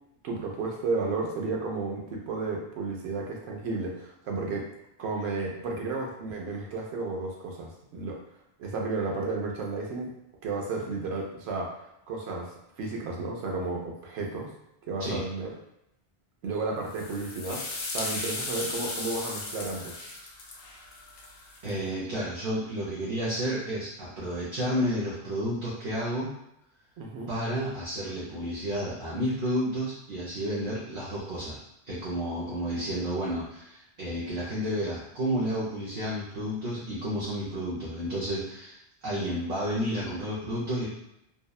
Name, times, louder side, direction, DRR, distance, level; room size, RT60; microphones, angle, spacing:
voice 1, 0.2-4.7 5.0-8.2 8.6-10.1 10.4-11.8 12.1-14.5 14.9-15.6 16.4-19.9 27.0-27.3, right 3 dB, 85° right, -1 dB, 0.9 m, -33 dB
sound 1, 16.9-21.7, left 3 dB, 70° left, 0.7 m, -36 dB
voice 2, 21.6-26.3 27.3-31.6 31.8-40.9, equal, 55° right, -8 dB, 0.7 m, -31 dB
2.7 x 2.1 x 2.3 m, 0.82 s
omnidirectional pair, 1.1 m